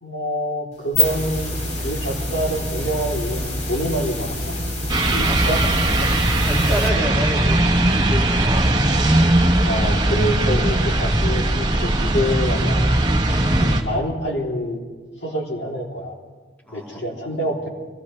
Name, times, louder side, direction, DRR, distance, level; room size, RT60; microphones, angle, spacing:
voice 1, 0.0-4.6 5.1-5.6 5.9-6.1 9.6-13.0 13.6-14.8 15.2-16.1 16.7-17.7, equal, 65° left, -2 dB, 3.1 m, -26 dB
sound 1, 0.7-6.9, left 1 dB, 40° left, 2.0 m, -26 dB
sound 2, 4.9-13.8, right 1 dB, 25° right, 1.1 m, -19 dB
voice 2, 6.0-8.7 9.4-9.7 16.7-17.5, equal, 10° left, -3 dB, 2.2 m, -30 dB
24.5 x 17.0 x 3.2 m, 1.4 s
head